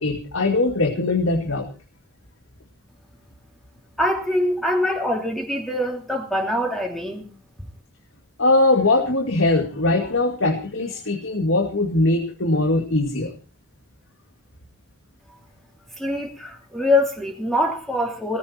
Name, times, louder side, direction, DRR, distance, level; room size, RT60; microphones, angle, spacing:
voice 1, 0.0-1.7 8.4-13.3, left 2 dB, 80° left, 4 dB, 2.3 m, -21 dB
voice 2, 4.0-7.3 16.0-18.4, left 1 dB, ahead, 1 dB, 2.8 m, -24 dB
18.5 x 14.5 x 4.5 m, 0.36 s
head